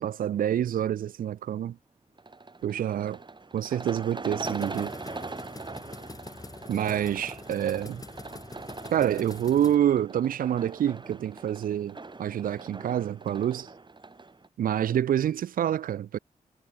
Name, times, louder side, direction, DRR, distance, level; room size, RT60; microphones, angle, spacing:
voice 1, 0.0-1.8 2.6-3.2 3.5-4.9 6.7-8.0 8.9-13.7 14.6-16.2, right 10 dB, 80° right, 0.4 m, -27 dB
sound 1, 2.2-14.5, right 3 dB, 35° right, 1.6 m, -41 dB
sound 2, 4.4-9.8, left 3 dB, 25° left, 1.1 m, -44 dB
cardioid pair, 65°, 14 cm